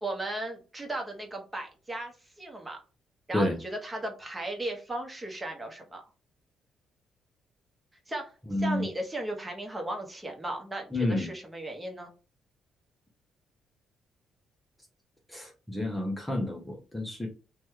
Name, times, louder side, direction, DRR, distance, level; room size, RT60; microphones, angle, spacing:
voice 1, 0.0-2.8 3.3-6.0 8.1-8.3 8.6-12.1, right 1 dB, 20° right, 2 dB, 1.0 m, -36 dB
voice 2, 8.5-8.8 10.9-11.3 15.3-17.3, left 1 dB, 10° left, 0 dB, 0.7 m, -30 dB
2.9 x 2.3 x 3.1 m, 0.34 s
cardioid pair, 90°, 0 cm